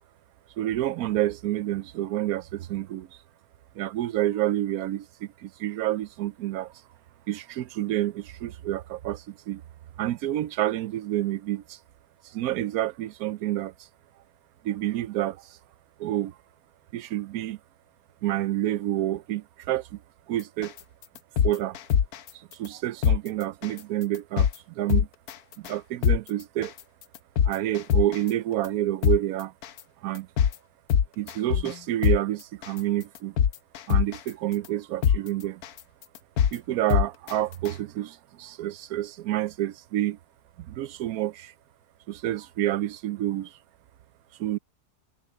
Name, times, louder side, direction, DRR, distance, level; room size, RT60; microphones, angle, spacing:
voice 1, 0.6-3.1 3.7-6.7 7.3-9.6 10.0-11.8 12.2-13.7 14.6-15.6 16.0-16.3 16.9-17.6 18.2-20.0 20.3-20.7 21.4-21.8 22.3-25.1 25.6-26.7 27.4-29.5 30.0-30.3 31.2-33.4 33.9-35.6 36.5-40.2 40.6-41.5 42.1-43.6 44.4-44.6, right 14 dB, 75° right, 1.1 m, -29 dB
sound 1, 20.6-20.8 21.2-22.3 22.6-22.7 23.0-23.2 23.6-23.8 24.1-24.5 24.9-25.3 25.6-25.7 26.0-26.2 26.6-26.8 27.1-28.3 28.6-28.7 29.0-29.2 29.6-29.8 30.1-30.5 30.9-31.7 32.0-32.2 32.6-32.8 33.1-34.3 34.6-34.7 35.0-35.2 35.6-35.8 36.1-36.5 36.9-37.3 37.6-37.7, left 8 dB, 80° left, 1.3 m, -22 dB
omnidirectional pair, 1.6 m